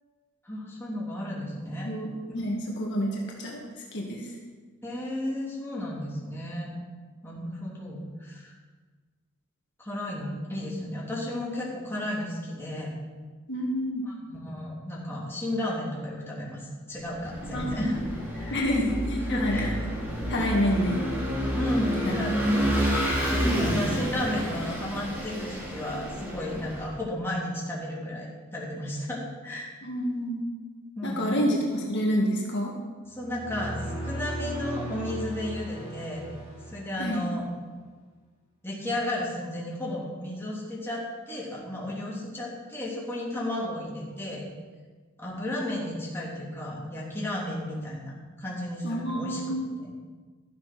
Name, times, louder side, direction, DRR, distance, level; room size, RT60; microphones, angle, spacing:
voice 1, 0.4-1.9 4.8-6.7 7.2-8.5 9.8-12.9 14.2-18.0 18.3-18.9 19.3-19.7 21.5-22.5 23.3-29.7 31.0-31.4 33.1-36.2 36.7-37.5 38.6-44.4 45.2-49.9, left 1 dB, 10° left, -5 dB, 2.9 m, -33 dB
voice 2, 2.3-3.6 3.9-4.3 13.5-14.1 17.5-17.9 18.5-19.7 20.3-21.0 22.0-22.1 29.8-30.4 31.0-32.8 37.0-37.2 48.8-49.7, equal, 55° left, -2 dB, 1.9 m, -28 dB
Vehicle / Engine, 17.1-26.9, equal, 10° right, 3.1 m, -29 dB
sound 1, 33.1-37.5, equal, 30° right, 4.1 m, -37 dB
13.0 x 7.7 x 6.0 m, 1.4 s
head